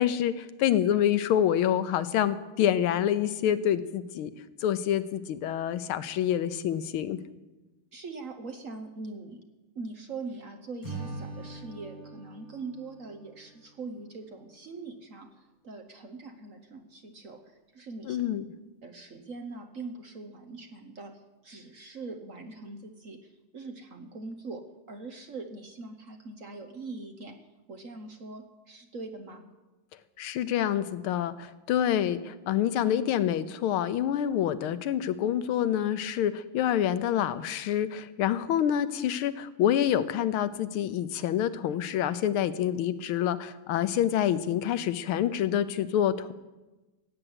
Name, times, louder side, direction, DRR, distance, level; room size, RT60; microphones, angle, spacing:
voice 1, 0.0-4.3 4.6-7.2 18.1-18.4 30.2-46.3, left 10 dB, 85° left, 13 dB, 1.6 m, -27 dB
voice 2, 7.9-9.4 9.7-15.3 15.6-18.2 18.8-27.4 27.7-29.4, right 3 dB, 50° right, 6 dB, 1.1 m, -42 dB
Acoustic guitar / Strum, 10.8-14.1, right 3 dB, 20° right, 6.5 m, -42 dB
16.0 x 8.8 x 8.0 m, 1.1 s
omnidirectional pair, 2.3 m